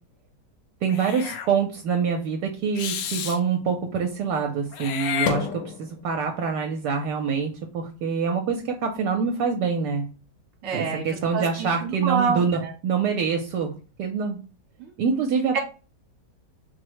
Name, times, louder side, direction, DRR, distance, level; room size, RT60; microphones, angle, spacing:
voice 1, 0.8-10.1 10.7-14.4 15.0-15.6, right 6 dB, 75° right, 4 dB, 1.2 m, -25 dB
Meow / Hiss, 0.9-1.5 2.8-3.4 4.7-6.0, left 8 dB, 85° left, 1.3 m, -30 dB
voice 2, 10.6-12.7 14.8-14.9 15.5-15.6, right 6 dB, 50° right, 2 dB, 1.3 m, -27 dB
4.4 x 2.0 x 4.6 m, 0.35 s
omnidirectional pair, 1.9 m